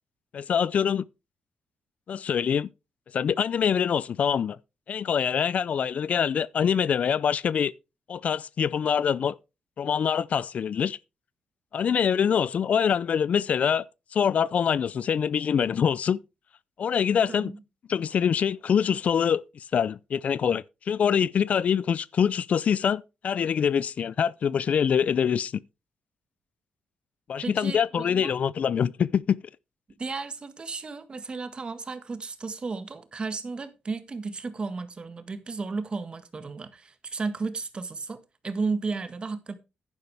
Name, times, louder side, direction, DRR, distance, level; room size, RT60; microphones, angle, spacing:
voice 1, 0.3-1.0 2.1-2.7 3.1-4.6 4.9-7.7 8.1-9.4 9.8-11.0 11.7-13.8 14.1-16.2 16.8-17.5 17.9-25.5 27.3-29.4, left 7 dB, 55° left, 0.4 m, -24 dB
voice 2, 27.4-28.3 30.0-39.5, right 4 dB, 35° right, 1.6 m, -34 dB
10.5 x 9.9 x 3.4 m
cardioid pair, 90°, 3 cm